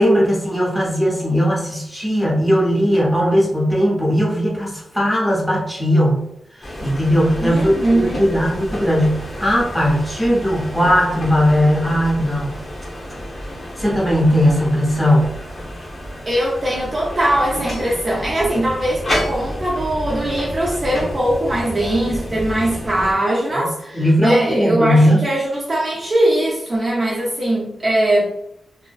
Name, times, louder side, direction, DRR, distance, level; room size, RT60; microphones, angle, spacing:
voice 1, 0.0-6.2 6.5-12.5 13.8-15.3 23.6-23.7 23.9-25.2, equal, ahead, -5 dB, 0.7 m, -18 dB
sound 1, 6.6-23.1, equal, 45° left, 0.9 m, -30 dB
voice 2, 7.4-8.2 16.3-28.3, right 1 dB, 35° right, -5 dB, 0.5 m, -20 dB
2.5 x 2.1 x 2.3 m, 0.80 s
wide cardioid pair, 105°, 0 cm